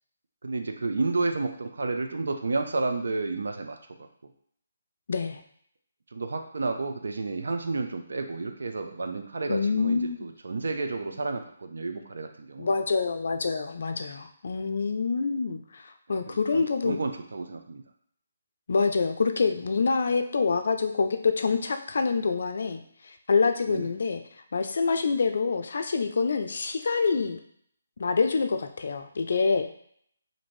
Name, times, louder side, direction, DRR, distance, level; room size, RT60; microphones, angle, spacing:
voice 1, 0.4-3.8 6.1-12.7 16.1-17.8 23.7-23.9, right 3 dB, 70° right, 5 dB, 0.5 m, -31 dB
voice 2, 5.1-5.4 9.5-10.2 12.6-17.0 18.7-24.2 24.5-27.4 28.0-29.7, left 4 dB, 60° left, 7 dB, 0.4 m, -26 dB
2.6 x 2.5 x 3.1 m, 0.65 s
figure-of-eight pair, 150°, 0 cm